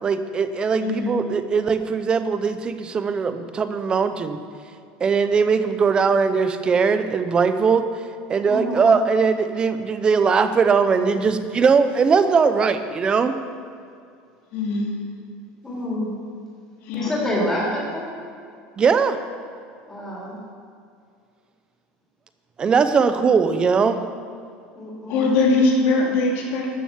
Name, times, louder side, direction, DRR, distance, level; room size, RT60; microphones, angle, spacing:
voice 1, 0.0-4.4 5.0-7.9 8.3-13.3 18.8-19.2 22.6-24.0, right 5 dB, 20° right, 10 dB, 0.7 m, -20 dB
voice 2, 0.8-1.1 14.5-14.9 16.9-17.1 25.1-26.7, left 3 dB, 60° left, -1 dB, 2.7 m, -21 dB
voice 3, 8.5-8.9 15.6-16.1 16.9-18.1 19.9-20.4 24.7-25.3, left 1 dB, 10° left, -6 dB, 3.7 m, -27 dB
13.0 x 6.9 x 7.2 m, 2.3 s
cardioid pair, 155°, 4 cm